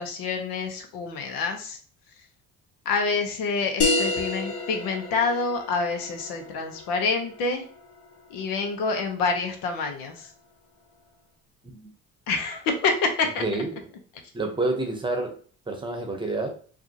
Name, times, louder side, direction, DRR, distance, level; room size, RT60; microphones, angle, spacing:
voice 1, 0.0-1.8 2.8-7.6 8.3-10.3 12.3-13.4, left 4 dB, 90° left, 5 dB, 1.0 m, -27 dB
sound 1, 3.8-8.9, left 3 dB, 45° left, 0.9 m, -30 dB
voice 2, 13.4-13.9 14.3-15.4 15.7-16.5, right 2 dB, 15° right, 4 dB, 0.9 m, -28 dB
4.9 x 2.7 x 2.8 m, 0.42 s
cardioid pair, 120°, 34 cm